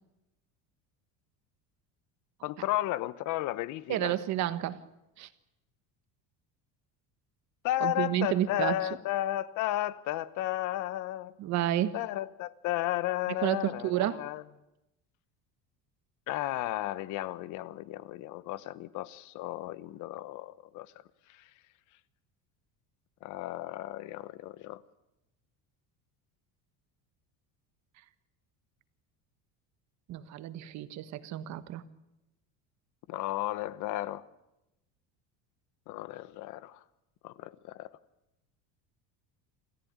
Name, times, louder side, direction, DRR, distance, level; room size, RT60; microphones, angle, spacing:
voice 1, 2.4-4.1 7.6-11.3 11.9-14.4 16.3-20.9 23.2-24.8 33.1-34.3 35.9-36.8 37.2-37.9, left 15 dB, 50° left, 1.0 m, -33 dB
voice 2, 3.9-4.8 5.2-5.3 7.8-8.8 11.4-12.0 13.3-14.2 30.1-31.8, right 13 dB, 45° right, 1.4 m, -30 dB
28.0 x 14.5 x 9.5 m
cardioid pair, 165°, 38 cm